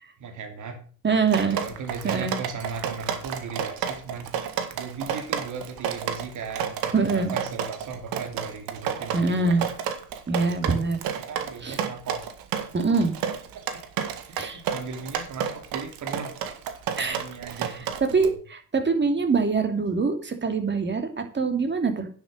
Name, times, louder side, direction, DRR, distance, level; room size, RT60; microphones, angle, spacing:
voice 1, 0.2-0.8 1.3-4.3 4.7-9.8 10.3-10.8 11.2-12.2 13.5-13.6 14.3-16.3 17.0-18.3, right 5 dB, 60° right, 5 dB, 2.8 m, -37 dB
voice 2, 1.0-1.6 2.0-2.3 6.9-7.3 9.1-9.7 10.3-11.0 11.6-11.8 12.7-13.1 14.4-14.6 17.0-17.2 18.1-22.1, right 4 dB, 30° right, 6 dB, 2.8 m, -24 dB
Drip, 1.3-18.3, right 8 dB, 80° right, 1.8 m, -31 dB
10.0 x 8.2 x 6.5 m, 0.42 s
supercardioid pair, 80°, 35 cm